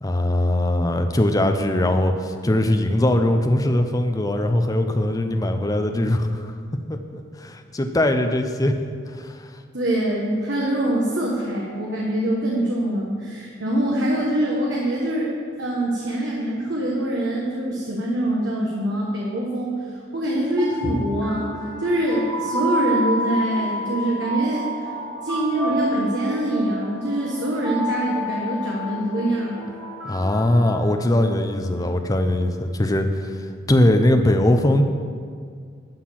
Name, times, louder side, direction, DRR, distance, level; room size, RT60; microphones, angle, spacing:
voice 1, 0.0-6.5 6.9-8.8 9.2-9.4 30.0-33.3 33.7-34.8, left 1 dB, 20° left, 6 dB, 0.5 m, -21 dB
voice 2, 9.7-15.3 15.6-19.8 20.1-21.5 21.8-24.6 25.2-29.6, right 1 dB, 60° right, -4 dB, 1.3 m, -24 dB
sound 1, 20.4-31.4, equal, ahead, 2.4 m, -30 dB
11.5 x 4.4 x 7.4 m, 2.1 s
head